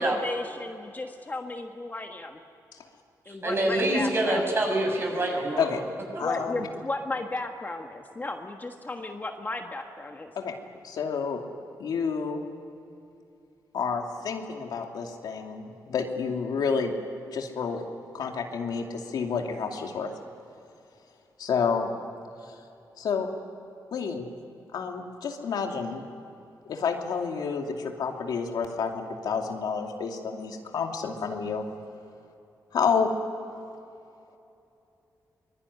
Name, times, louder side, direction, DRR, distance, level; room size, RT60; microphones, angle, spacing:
voice 1, 0.0-2.4 3.2-4.5 6.2-10.3, left 2 dB, 25° left, 3 dB, 1.5 m, -34 dB
voice 2, 3.4-5.8 6.1-6.2, right 1 dB, 35° right, 1 dB, 7.2 m, -26 dB
voice 3, 6.2-6.7 10.4-10.5 10.8-11.4 11.8-12.5 13.7-16.9 17.3-17.8 18.1-20.1 21.4-21.9 23.0-23.3 23.9-24.3 24.7-26.0 26.7-31.6 32.7-33.1, left 6 dB, 85° left, 3 dB, 2.6 m, -29 dB
24.5 x 22.0 x 9.8 m, 2.7 s
cardioid pair, 105°, 7 cm